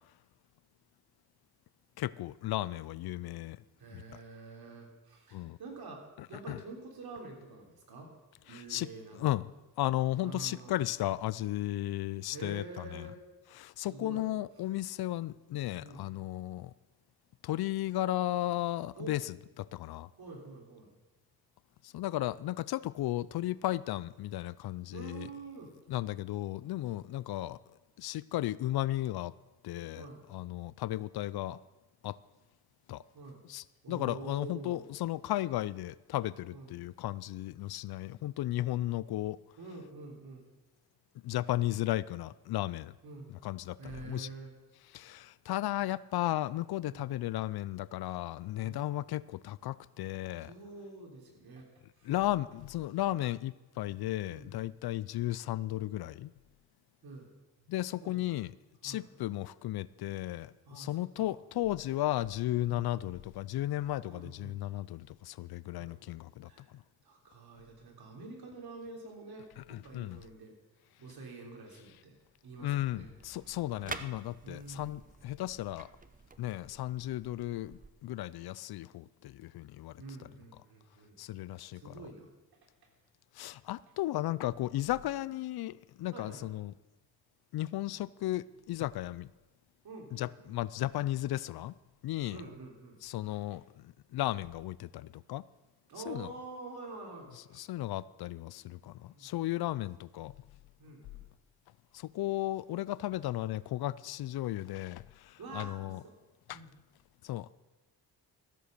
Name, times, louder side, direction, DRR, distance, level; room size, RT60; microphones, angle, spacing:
voice 1, 2.0-3.6 3.9-4.0 5.3-5.6 6.2-6.6 8.5-9.5 9.8-13.1 13.5-16.7 17.4-20.1 21.8-25.3 25.9-27.6 28.0-29.3 29.6-31.6 32.0-32.2 32.9-33.0 33.5-39.4 41.2-42.9 43.3-44.3 44.9-50.5 52.0-56.3 57.7-58.5 58.8-66.8 69.6-70.2 72.6-75.9 76.4-80.0 81.2-81.9 83.3-86.7 87.5-89.3 90.1-91.7 92.0-92.4 93.0-95.4 96.1-96.3 97.5-100.3 101.9-106.0 106.5-106.6 107.2-107.5, left 15 dB, 65° left, 20 dB, 0.5 m, -35 dB
voice 2, 3.8-6.0 6.3-8.1 8.4-9.3 10.2-10.9 12.3-13.2 13.8-14.2 15.8-16.0 18.9-19.1 20.2-20.9 24.9-25.7 29.9-30.2 33.1-33.4 33.8-34.9 36.5-36.7 39.6-40.5 43.0-43.3 43.8-44.5 46.9-47.0 48.6-48.8 50.4-51.7 52.0-52.1 54.3-54.5 57.0-57.3 58.0-58.4 58.8-59.1 60.6-60.9 61.2-61.3 62.6-62.9 64.1-64.6 65.8-66.0 66.4-66.7 67.0-70.5 71.0-72.2 72.4-73.1 73.4-73.6 74.4-75.0 80.0-81.2 81.5-82.3 86.1-86.4 89.8-90.5 92.3-93.4 95.9-97.7 99.1-99.3 100.8-101.2 105.4-106.1 106.5-106.7, right 3 dB, 60° right, 1 dB, 3.5 m, -47 dB
sound 1, 72.8-77.9, right 3 dB, 20° right, 0.8 m, -48 dB
14.0 x 7.8 x 6.6 m, 1.1 s
cardioid pair, 75°, 41 cm